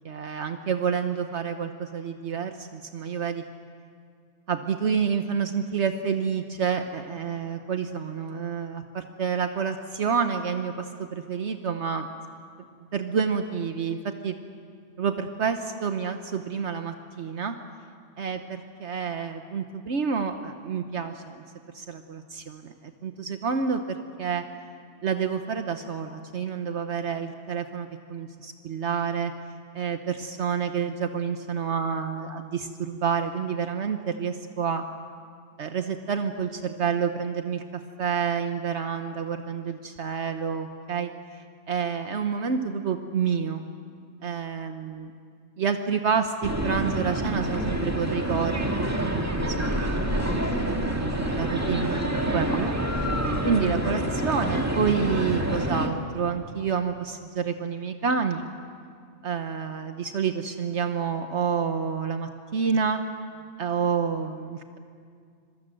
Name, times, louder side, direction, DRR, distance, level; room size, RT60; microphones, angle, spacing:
voice 1, 0.0-3.4 4.5-12.0 12.9-14.0 14.2-14.4 15.0-17.5 18.2-21.4 21.7-22.7 23.0-24.4 25.0-29.3 29.7-34.8 35.6-37.6 38.0-41.4 41.7-43.6 44.2-45.1 45.6-49.8 50.4-52.0 52.3-52.8 53.4-58.4 59.2-63.0 63.6-64.8, right 6 dB, 70° right, 7 dB, 1.3 m, -28 dB
sound 1, 46.4-55.9, right 1 dB, 15° right, 1.9 m, -27 dB
26.5 x 24.0 x 7.7 m, 2.2 s
omnidirectional pair, 1.2 m